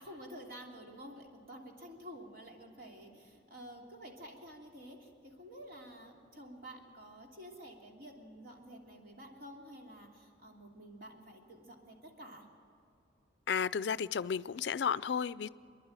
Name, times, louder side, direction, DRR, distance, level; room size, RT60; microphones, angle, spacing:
voice 1, 0.0-12.5, equal, 55° right, 0 dB, 3.0 m, -50 dB
voice 2, 13.5-15.5, left 7 dB, 65° left, 17 dB, 0.4 m, -33 dB
27.5 x 11.0 x 8.8 m, 2.6 s
head